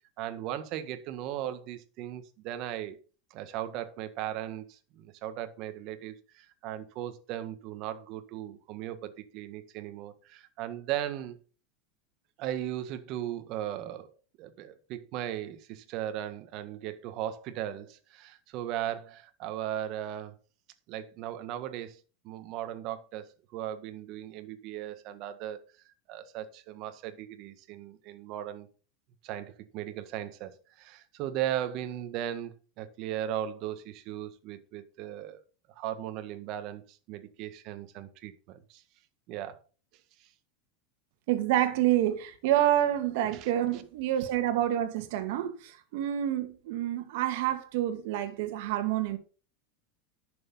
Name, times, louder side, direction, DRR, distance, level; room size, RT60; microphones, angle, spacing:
voice 1, 0.2-3.0 3.3-11.4 12.4-14.1 14.4-20.3 20.9-25.6 26.1-28.7 29.2-35.4 35.7-38.8 39.3-39.6 43.2-43.5, right 11 dB, 50° right, 1.7 m, -37 dB
voice 2, 41.3-49.2, right 12 dB, 65° right, 2.2 m, -28 dB
11.0 x 7.0 x 5.6 m
supercardioid pair, 120°, 0 cm